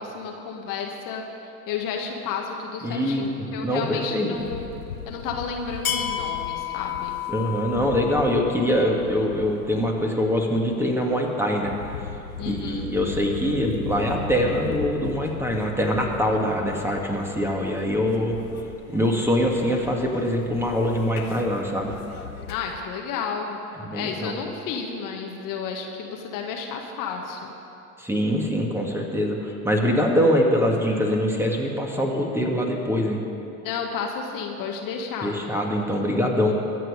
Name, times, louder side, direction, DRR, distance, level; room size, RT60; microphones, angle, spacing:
voice 1, 0.0-4.7 5.0-7.2 12.4-12.9 22.5-23.6 23.9-27.5 29.9-30.1 33.6-35.3, left 6 dB, 50° left, 2 dB, 1.6 m, -32 dB
voice 2, 2.8-4.3 7.3-11.9 12.4-18.4 18.9-21.9 23.8-24.4 28.0-33.2 35.2-36.5, equal, 5° right, 0 dB, 2.1 m, -24 dB
sound 1, 4.3-22.8, left 8 dB, 85° left, 0.9 m, -36 dB
23.0 x 7.8 x 5.1 m, 2.8 s
figure-of-eight pair, 70°, 42 cm